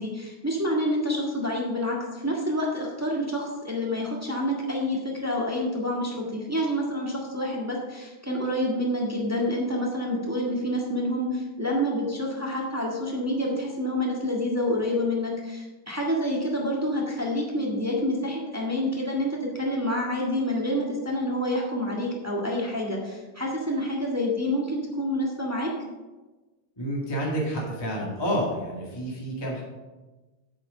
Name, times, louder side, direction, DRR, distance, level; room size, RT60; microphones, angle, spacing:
voice 1, 0.0-25.7, left 1 dB, 15° right, -3 dB, 0.5 m, -28 dB
voice 2, 26.8-29.6, equal, 15° left, -4 dB, 1.1 m, -29 dB
8.7 x 6.4 x 6.5 m, 1.2 s
omnidirectional pair, 3.4 m